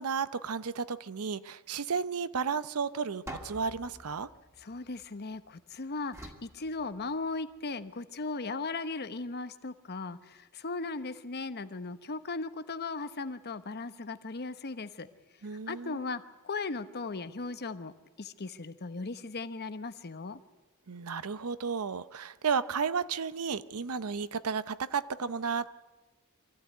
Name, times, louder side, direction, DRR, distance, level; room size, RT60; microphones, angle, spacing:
voice 1, 0.0-4.3 15.4-16.0 20.9-25.7, right 5 dB, 80° right, 15 dB, 0.7 m, -33 dB
sound 1, 3.3-5.5 6.1-7.5, right 1 dB, 15° right, 2.0 m, -48 dB
voice 2, 4.6-15.1 15.7-17.9 18.2-20.4, left 3 dB, 50° left, 11 dB, 0.9 m, -37 dB
24.0 x 14.5 x 9.4 m, 1.2 s
head